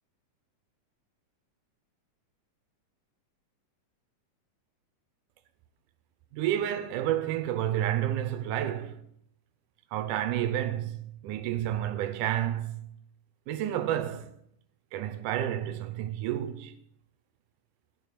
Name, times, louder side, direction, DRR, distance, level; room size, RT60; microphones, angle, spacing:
voice 1, 6.3-9.0 9.9-12.8 13.5-14.3 14.9-16.7, right 11 dB, 90° right, 2.2 m, -30 dB
13.0 x 4.7 x 6.6 m
omnidirectional pair, 3.6 m